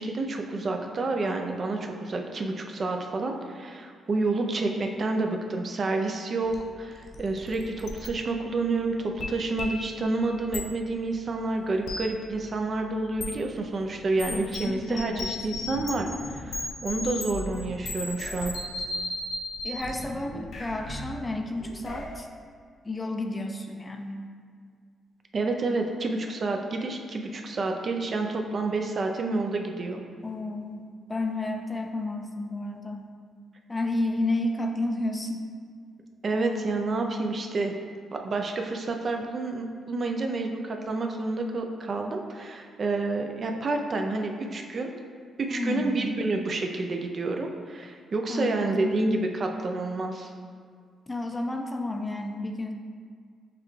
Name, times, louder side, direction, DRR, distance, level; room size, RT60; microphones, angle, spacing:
voice 1, 0.0-18.6 25.3-30.0 36.2-37.7 38.1-45.0 45.4-50.3, right 3 dB, 45° right, 3 dB, 0.4 m, -29 dB
sound 1, 6.5-6.6 6.9-8.1 9.2-10.0 10.5-10.6 11.8-12.0 13.2-13.3 14.2-22.2, left 2 dB, 65° left, 0.6 m, -35 dB
voice 2, 14.9-15.3 19.6-22.3 22.8-24.2 30.2-33.1 33.7-35.4 45.5-46.0 48.3-49.0 51.1-52.7, left 2 dB, 20° left, 4 dB, 0.4 m, -31 dB
6.6 x 2.3 x 3.1 m, 2.1 s
cardioid pair, 80°, 0 cm